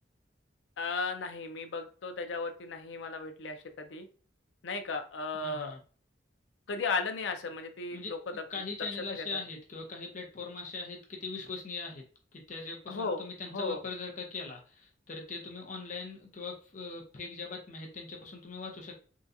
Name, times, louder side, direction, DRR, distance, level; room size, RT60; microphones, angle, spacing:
voice 1, 0.8-4.1 4.6-5.8 6.7-8.4 9.1-9.3 12.9-13.8, left 4 dB, 85° left, 7 dB, 0.5 m, -35 dB
voice 2, 5.4-5.8 7.9-8.1 8.5-12.0 12.3-19.0, left 4 dB, 45° left, 0 dB, 0.7 m, -41 dB
3.7 x 2.3 x 2.6 m, 0.39 s
head